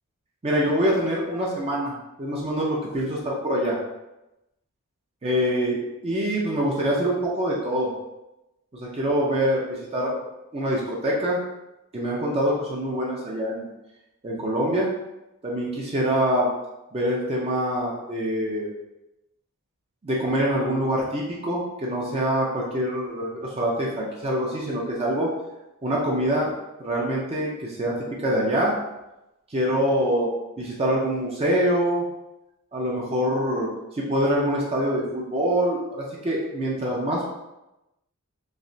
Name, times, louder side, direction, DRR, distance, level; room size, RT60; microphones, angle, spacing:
voice 1, 0.4-3.8 5.2-7.9 8.7-10.2 10.5-11.4 11.9-13.7 14.2-14.9 15.4-16.5 16.9-18.7 20.0-25.3 25.8-26.5 26.8-28.8 29.5-30.3 30.6-32.1 32.7-33.7 33.9-37.4, equal, 25° right, -3 dB, 0.5 m, -25 dB
3.1 x 2.8 x 2.6 m, 0.94 s
head